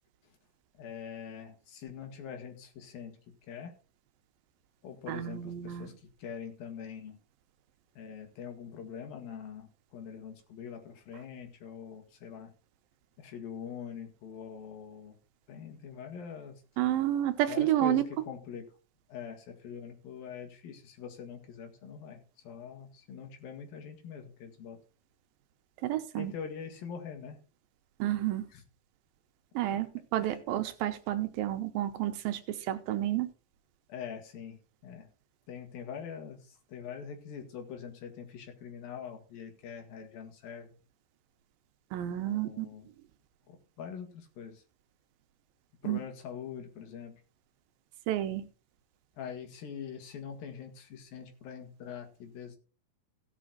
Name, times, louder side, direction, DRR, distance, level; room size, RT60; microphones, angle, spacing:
voice 1, 0.7-3.7 4.8-7.2 8.0-12.5 13.2-15.2 15.5-16.6 17.5-18.7 19.1-24.8 26.2-27.4 28.5-28.6 30.2-30.4 33.9-35.1 35.5-40.8 42.2-42.9 43.5-44.6 45.8-47.2 49.2-52.6, left 7 dB, 85° left, 3.6 m, -44 dB
voice 2, 5.1-5.9 16.8-18.0 25.8-26.3 28.0-28.5 29.5-33.3 41.9-42.7 45.8-46.0 48.1-48.5, right 13 dB, 90° right, 2.7 m, -30 dB
16.5 x 6.2 x 3.9 m
omnidirectional pair, 4.1 m